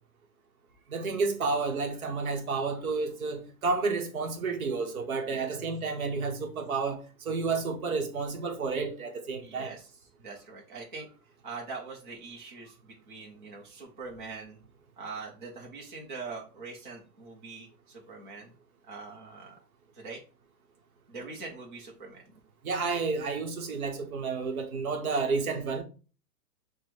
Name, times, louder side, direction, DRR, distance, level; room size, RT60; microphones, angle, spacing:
voice 1, 0.9-9.7 22.6-25.8, right 4 dB, 60° right, 0.9 m, -31 dB
voice 2, 5.2-5.6 9.4-9.9 10.2-11.1 11.4-14.6 15.0-18.5 18.9-19.6 19.9-20.2 21.1-22.2, right 4 dB, 30° right, 0.6 m, -43 dB
5.8 x 2.2 x 3.2 m
hypercardioid pair, 175°, 49 cm